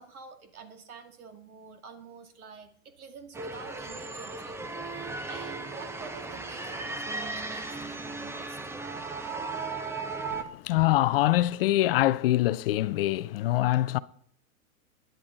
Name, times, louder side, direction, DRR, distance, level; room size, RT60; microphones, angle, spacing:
voice 1, 0.0-8.6, right 5 dB, 80° right, 2.2 m, -48 dB
sound 1, 3.3-10.4, right 3 dB, 5° right, 0.6 m, -36 dB
voice 2, 10.4-14.0, left 15 dB, 45° left, 0.5 m, -24 dB
17.0 x 10.5 x 3.9 m
hypercardioid pair, 120°, 43 cm